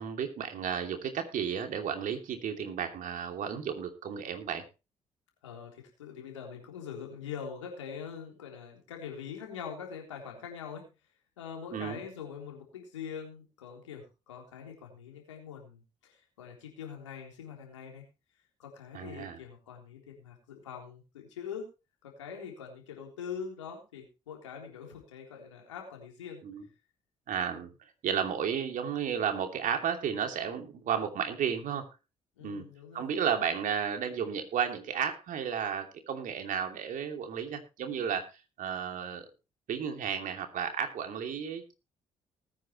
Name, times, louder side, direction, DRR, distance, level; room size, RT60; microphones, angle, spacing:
voice 1, 0.0-4.6 11.7-12.0 18.9-19.4 26.4-26.6 27.3-27.7 28.0-31.8 32.4-32.6 32.9-38.2 38.6-39.3 39.7-41.7, right 7 dB, 60° right, 6 dB, 2.8 m, -33 dB
voice 2, 5.4-10.9 11.4-18.0 18.6-21.7 22.0-26.4 27.5-27.6 32.4-33.1, left 7 dB, 85° left, 1 dB, 3.6 m, -43 dB
19.5 x 9.3 x 3.1 m, 0.29 s
hypercardioid pair, 45°, 15 cm